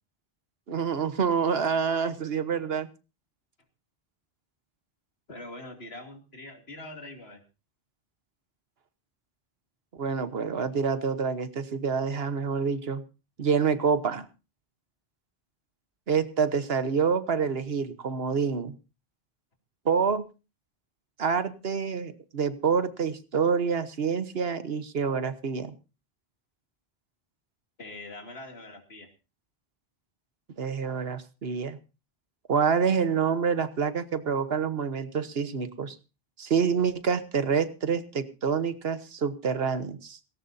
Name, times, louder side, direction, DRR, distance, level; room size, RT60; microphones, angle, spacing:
voice 1, 0.7-2.9 9.9-13.0 13.4-14.2 16.1-18.7 19.8-20.2 21.2-25.7 30.6-31.8 32.5-36.0 36.4-40.2, right 6 dB, 75° right, 12 dB, 1.4 m, -27 dB
voice 2, 5.3-7.4 27.8-29.1, left 2 dB, 80° left, 4 dB, 3.0 m, -43 dB
18.0 x 17.5 x 2.7 m, 0.30 s
omnidirectional pair, 1.0 m